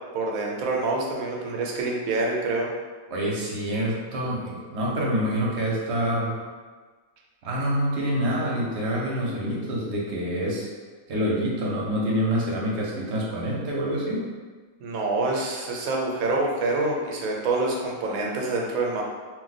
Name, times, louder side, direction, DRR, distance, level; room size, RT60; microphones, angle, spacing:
voice 1, 0.1-2.7 14.8-19.0, right 2 dB, 80° right, -1 dB, 1.1 m, -26 dB
voice 2, 3.1-6.4 7.4-10.7 11.1-14.2, equal, 60° right, -4 dB, 0.9 m, -26 dB
2.5 x 2.1 x 4.0 m, 1.4 s
omnidirectional pair, 1.4 m